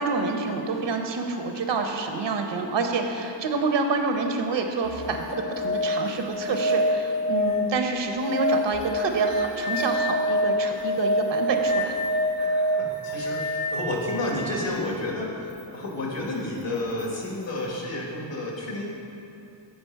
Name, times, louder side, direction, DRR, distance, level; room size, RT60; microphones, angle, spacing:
voice 1, 0.0-12.0, right 3 dB, 70° right, 4 dB, 0.8 m, -27 dB
sound 1, 4.8-14.7 17.0-17.1, equal, 50° left, 0.8 m, -26 dB
voice 2, 12.4-18.9, left 2 dB, 70° left, -2 dB, 1.6 m, -31 dB
7.8 x 5.1 x 4.5 m, 2.8 s
cardioid pair, 70°, 45 cm